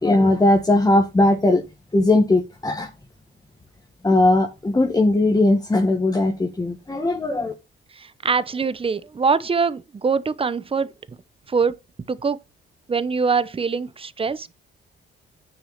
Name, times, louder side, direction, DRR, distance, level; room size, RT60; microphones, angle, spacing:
voice 1, 0.0-1.6 1.9-2.9 4.0-7.5, left 2 dB, 15° left, 1.5 m, -18 dB
voice 2, 8.0-10.9 11.5-11.8 12.1-12.4 12.9-14.5, right 5 dB, 25° right, 0.8 m, -23 dB
9.5 x 4.7 x 5.8 m
cardioid pair, 100°, 21 cm